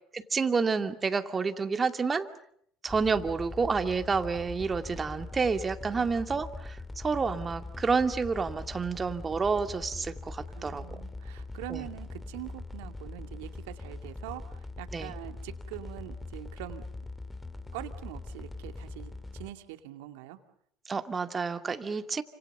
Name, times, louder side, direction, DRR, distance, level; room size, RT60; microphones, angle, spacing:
voice 1, 0.1-2.3 2.8-11.0 11.7-11.8 14.9-15.1 20.9-22.2, right 5 dB, 30° right, 8 dB, 2.4 m, -29 dB
sound 1, 2.9-19.5, left 2 dB, 15° left, 2.3 m, -42 dB
voice 2, 10.5-16.8 17.7-20.4, right 15 dB, 75° right, 8 dB, 2.3 m, -43 dB
29.5 x 26.5 x 6.8 m, 0.69 s
hypercardioid pair, 70°, 0 cm